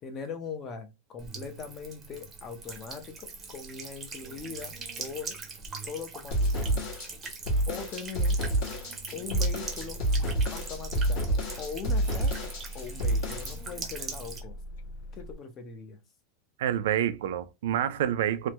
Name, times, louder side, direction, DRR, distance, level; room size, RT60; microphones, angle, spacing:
voice 1, 0.0-5.4 5.8-6.9 7.7-8.4 9.1-10.0 10.5-14.6 15.1-16.0, left 5 dB, 25° left, 0.6 m, -41 dB
Buzz / Water tap faucet / Trickle dribble, 1.2-14.4, right 4 dB, 15° right, 0.7 m, -42 dB
sound 1, 6.3-13.6, right 1 dB, 55° left, 1.4 m, -28 dB
sound 2, 9.6-15.4, left 1 dB, 85° left, 0.4 m, -43 dB
voice 2, 16.6-18.5, right 10 dB, 85° right, 0.4 m, -28 dB
3.2 x 2.2 x 2.9 m
supercardioid pair, 170°, 0 cm